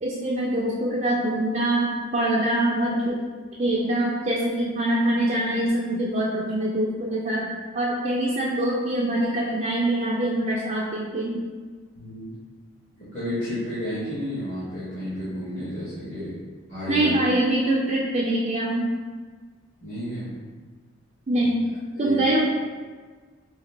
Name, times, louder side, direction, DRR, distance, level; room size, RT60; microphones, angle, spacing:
voice 1, 0.0-3.2 3.6-11.4 16.9-18.9 21.3-21.7 22.0-22.4, right 1 dB, 30° right, -5 dB, 0.4 m, -24 dB
voice 2, 11.9-12.3 12.9-16.4 16.7-17.1 19.8-20.4 21.4-21.5 21.9-22.2, left 1 dB, 45° left, -12 dB, 1.1 m, -32 dB
4.8 x 2.3 x 3.2 m, 1.5 s
head